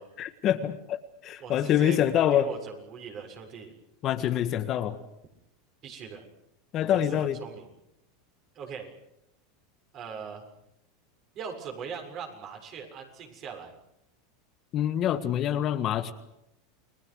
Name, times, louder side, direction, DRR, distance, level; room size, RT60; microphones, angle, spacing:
voice 1, 0.2-2.5 4.0-5.0 6.7-7.4 14.7-16.1, left 10 dB, 40° left, 10 dB, 1.6 m, -26 dB
voice 2, 1.4-2.0 2.3-3.7 5.8-6.2 6.8-7.7 8.6-8.9 9.9-10.4 11.4-13.7, right 6 dB, 40° right, 3 dB, 7.0 m, -40 dB
29.5 x 21.0 x 6.4 m, 0.80 s
supercardioid pair, 125°, 0 cm